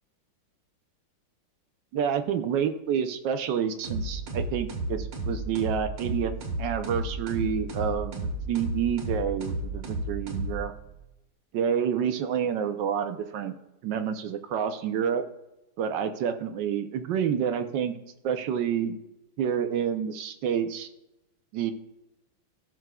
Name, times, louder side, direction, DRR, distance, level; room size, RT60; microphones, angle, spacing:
voice 1, 1.9-6.3 6.6-10.7 11.5-13.5 13.8-15.2 15.8-17.9 18.2-18.9 19.4-20.9 21.5-21.7, right 8 dB, 70° right, 8 dB, 1.2 m, -28 dB
sound 1, 3.8-11.0, right 2 dB, 85° right, 2.2 m, -33 dB
15.5 x 6.2 x 2.3 m, 0.91 s
omnidirectional pair, 2.3 m